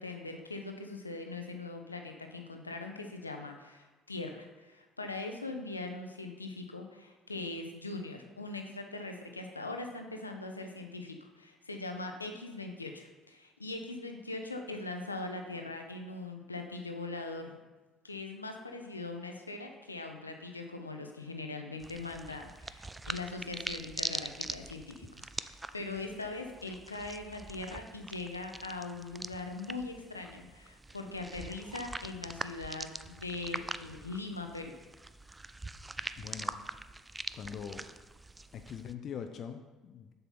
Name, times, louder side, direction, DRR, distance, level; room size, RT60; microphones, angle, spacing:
voice 1, 0.0-17.6 18.0-34.7, left 3 dB, 85° left, 4 dB, 0.7 m, -41 dB
sound 1, 21.8-38.9, right 2 dB, 15° right, 0.4 m, -43 dB
voice 2, 36.2-36.5 37.3-37.9 38.5-40.1, left 7 dB, 45° left, 7 dB, 0.5 m, -42 dB
7.4 x 6.8 x 4.3 m, 1.2 s
figure-of-eight pair, 55°, 0 cm